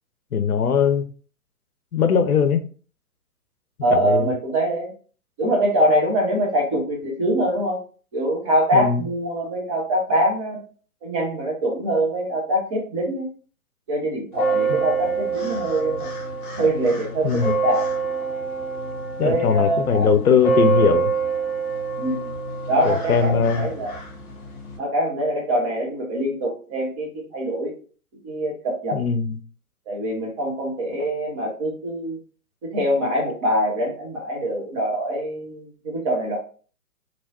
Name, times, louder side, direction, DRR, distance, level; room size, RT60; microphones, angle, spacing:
voice 1, 0.3-1.1 1.9-2.6 3.9-4.3 8.7-9.0 17.2-17.5 19.2-21.1 22.8-23.7 28.9-29.4, left 6 dB, 80° left, 0.6 m, -20 dB
voice 2, 3.8-4.9 5.4-7.8 8.1-10.6 11.0-13.3 13.9-16.1 16.6-17.8 19.2-20.1 22.0-22.3 22.7-24.0 24.8-27.8 28.2-29.0 29.9-32.2 32.6-36.4, right 1 dB, 20° right, 0.7 m, -24 dB
sound 1, 14.3-24.8, right 4 dB, 35° left, 1.3 m, -26 dB
3.1 x 2.9 x 2.6 m
figure-of-eight pair, 125°, 43 cm